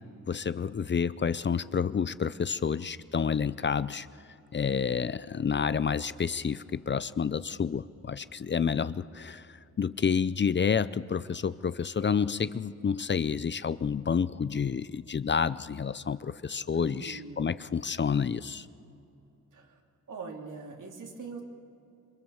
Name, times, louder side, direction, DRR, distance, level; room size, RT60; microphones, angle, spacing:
voice 1, 0.3-4.1 4.5-18.7, left 6 dB, 35° left, 16 dB, 0.5 m, -29 dB
voice 2, 16.7-17.5 19.5-19.8 20.1-21.4, right 4 dB, 75° right, 1 dB, 3.1 m, -42 dB
27.0 x 23.5 x 7.2 m, 2.8 s
wide cardioid pair, 115°, 31 cm